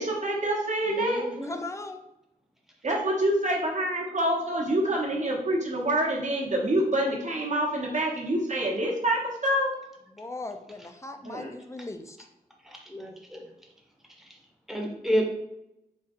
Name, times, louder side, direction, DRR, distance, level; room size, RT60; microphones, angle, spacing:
voice 1, 0.0-1.2 2.8-9.7 11.2-11.5, right 1 dB, 50° right, 1.0 m, -26 dB
voice 2, 0.9-1.7 12.9-13.5 14.7-15.2, equal, ahead, 0.8 m, -30 dB
voice 3, 1.4-2.0 10.1-12.2, left 2 dB, 20° left, 0.4 m, -38 dB
3.6 x 2.3 x 4.4 m
wide cardioid pair, 85°, 16 cm